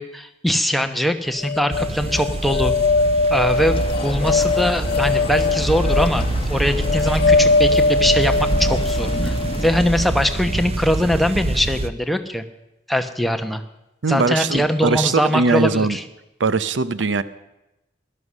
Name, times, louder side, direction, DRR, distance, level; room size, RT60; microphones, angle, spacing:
voice 1, 0.0-2.7 3.3-9.3 9.6-12.4 12.9-13.6 14.1-16.0, equal, ahead, 6 dB, 0.9 m, -22 dB
sound 1, 1.4-10.6, left 3 dB, 55° left, 0.5 m, -21 dB
sound 2, 1.7-11.9, right 2 dB, 35° right, 0.5 m, -26 dB
sound 3, 3.5-10.3, left 2 dB, 30° left, 1.1 m, -31 dB
voice 2, 14.0-16.0 16.4-17.2, right 4 dB, 80° right, 15 dB, 0.7 m, -20 dB
16.5 x 11.5 x 6.3 m, 0.94 s
head